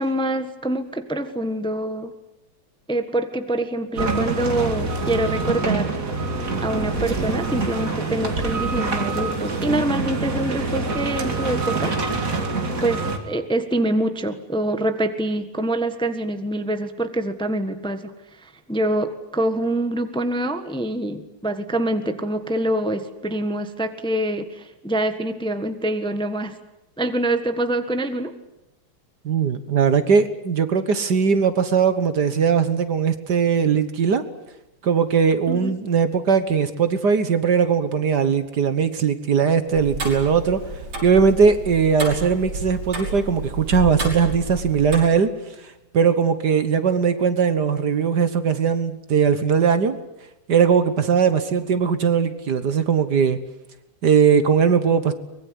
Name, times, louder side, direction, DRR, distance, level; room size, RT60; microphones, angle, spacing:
voice 1, 0.0-2.1 2.9-5.9 6.6-11.9 12.8-18.1 18.4-26.6 27.0-28.3 35.5-35.7, right 1 dB, 5° left, 8 dB, 1.2 m, -25 dB
sound 1, 3.9-13.2, right 3 dB, 40° right, 2.8 m, -25 dB
voice 2, 29.2-34.2 34.8-40.6 41.0-45.3 45.9-50.0 50.5-53.4 54.0-55.1, right 6 dB, 55° right, 11 dB, 1.7 m, -19 dB
Tick-tock, 39.7-45.0, right 2 dB, 85° right, 6.5 m, -31 dB
24.0 x 21.5 x 9.6 m, 0.92 s
omnidirectional pair, 2.3 m